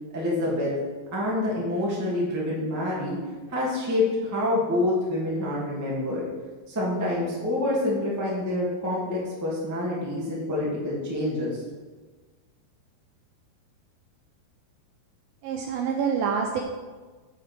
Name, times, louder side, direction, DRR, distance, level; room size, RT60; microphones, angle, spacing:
voice 1, 0.1-0.7 1.1-3.2 3.5-6.2 6.7-11.5, left 1 dB, 10° right, -6 dB, 1.1 m, -27 dB
voice 2, 15.4-16.6, right 6 dB, 80° right, 1 dB, 2.2 m, -26 dB
8.6 x 7.4 x 4.7 m, 1.4 s
omnidirectional pair, 4.7 m